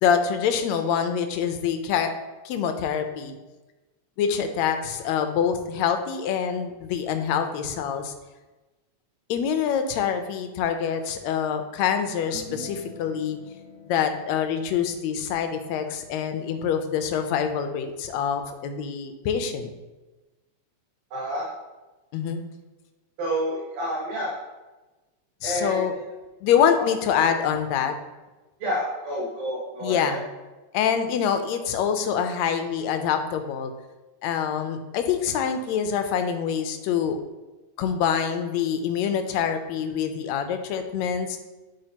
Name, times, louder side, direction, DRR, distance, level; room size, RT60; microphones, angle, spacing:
voice 1, 0.0-2.1 2.5-3.4 4.2-8.1 9.3-13.4 13.9-19.7 22.1-22.4 25.4-25.9 26.4-27.9 29.8-30.2 30.7-33.7 34.2-37.2 37.8-41.4, left 7 dB, 75° left, 7 dB, 1.8 m, -25 dB
sound 1, 12.2-18.8, left 2 dB, 35° left, 0.3 m, -47 dB
voice 2, 21.1-21.5 23.2-24.3 25.4-25.8 28.6-30.2, equal, 65° right, -7 dB, 2.8 m, -29 dB
11.0 x 4.4 x 2.9 m, 1.1 s
omnidirectional pair, 3.4 m